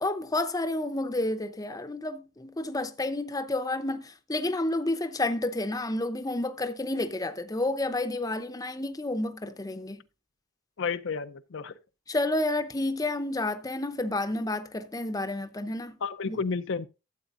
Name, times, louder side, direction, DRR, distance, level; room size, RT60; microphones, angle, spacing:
voice 1, 0.0-10.0 12.1-16.0 16.2-16.4, left 2 dB, 15° left, 0.7 m, -30 dB
voice 2, 10.8-11.7 16.0-16.9, left 5 dB, 60° left, 0.5 m, -31 dB
13.0 x 8.1 x 2.5 m
head